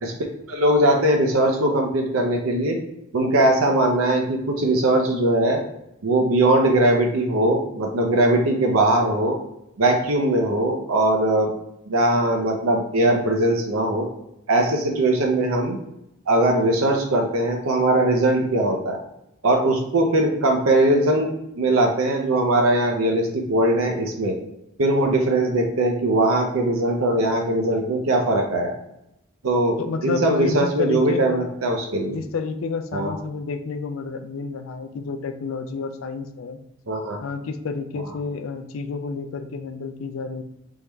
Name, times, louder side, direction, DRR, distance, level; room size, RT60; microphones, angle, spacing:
voice 1, 0.5-2.8 3.1-5.6 6.0-9.4 9.8-11.5 11.9-14.1 14.5-15.8 16.3-19.0 19.4-21.3 21.6-24.3 24.8-28.7 29.4-32.2 32.9-33.1 36.9-37.2, right 1 dB, 80° right, 2 dB, 0.6 m, -20 dB
voice 2, 29.8-31.6 32.1-36.6 37.2-40.4, left 4 dB, 70° left, 8 dB, 0.4 m, -30 dB
3.6 x 3.3 x 3.0 m, 0.84 s
head